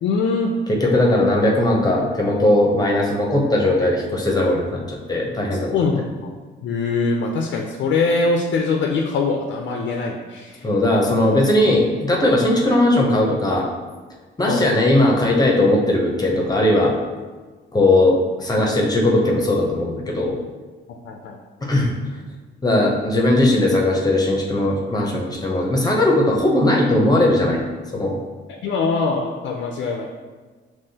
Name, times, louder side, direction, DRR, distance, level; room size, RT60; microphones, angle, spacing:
voice 1, 0.0-0.5 5.7-6.3 6.6-10.7 14.5-14.7 21.0-21.4 28.6-30.1, left 4 dB, 70° left, 2 dB, 0.5 m, -22 dB
voice 2, 0.7-5.7 10.6-13.6 14.4-16.9 17.7-20.3 21.6-21.9 22.6-27.6 27.9-28.1, left 1 dB, 20° left, -1 dB, 0.8 m, -18 dB
5.4 x 3.0 x 2.8 m, 1.4 s
cardioid pair, 90°, 20 cm